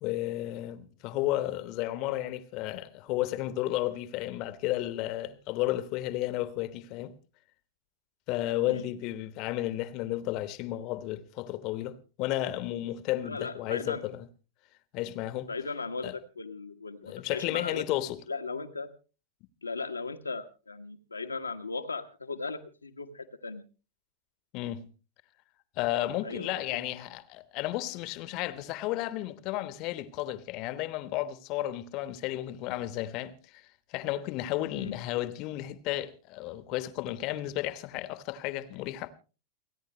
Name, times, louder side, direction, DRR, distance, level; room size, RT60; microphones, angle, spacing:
voice 1, 0.0-7.1 8.3-14.3 14.9-15.5 16.0-16.1 17.0-18.2 24.5-24.9 25.8-33.6 33.9-39.1, left 15 dB, 40° left, 1.2 m, -33 dB
voice 2, 13.2-14.1 15.5-17.8 18.3-18.9 19.6-23.6 26.2-26.9 34.7-35.0, left 4 dB, 80° left, 1.3 m, -37 dB
29.5 x 10.0 x 3.1 m
figure-of-eight pair, 90°, 0 cm